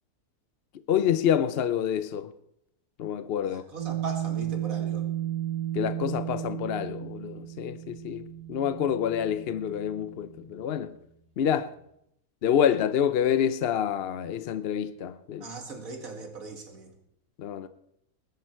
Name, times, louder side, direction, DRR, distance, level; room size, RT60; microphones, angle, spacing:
voice 1, 0.9-2.3 3.0-3.6 5.7-10.9 11.4-11.7 12.4-15.5 17.4-17.7, left 9 dB, 60° left, 0.6 m, -27 dB
voice 2, 3.4-5.1 15.4-16.9, right 3 dB, 60° right, 2.6 m, -39 dB
sound 1, 3.8-10.5, right 12 dB, 25° right, 1.8 m, -34 dB
20.5 x 10.5 x 4.5 m
omnidirectional pair, 1.6 m